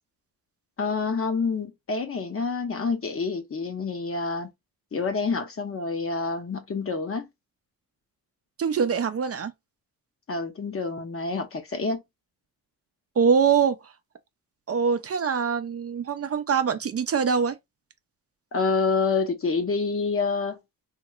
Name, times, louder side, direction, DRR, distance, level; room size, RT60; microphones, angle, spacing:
voice 1, 0.8-4.5 4.9-7.3 10.3-12.0 18.5-20.6, left 4 dB, 40° left, 0.8 m, -27 dB
voice 2, 8.6-9.5 13.2-13.8 14.7-17.6, right 6 dB, 40° right, 0.5 m, -23 dB
2.9 x 2.8 x 2.3 m
cardioid pair, 75°, 36 cm